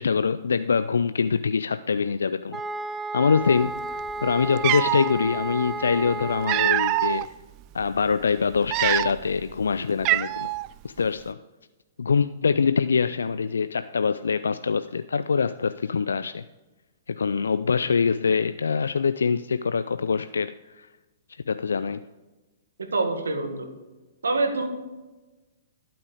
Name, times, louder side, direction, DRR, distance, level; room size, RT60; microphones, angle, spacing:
voice 1, 0.0-2.6 3.1-7.3 7.7-10.5 10.8-11.4 12.0-16.4 17.1-20.9 21.5-22.0, left 5 dB, 80° left, 12 dB, 0.4 m, -24 dB
sound 1, 2.5-7.2, right 2 dB, 10° right, 0.8 m, -33 dB
Cat, 4.1-4.2 4.6-5.1 6.1-7.3 7.8-8.0 8.6-9.4 9.6-9.7 10.0-10.7, right 18 dB, 35° right, 0.4 m, -24 dB
voice 2, 22.8-23.7 24.2-24.7, right 3 dB, 85° right, 6 dB, 1.8 m, -25 dB
12.0 x 8.8 x 5.0 m, 1.1 s
hypercardioid pair, 120°, 0 cm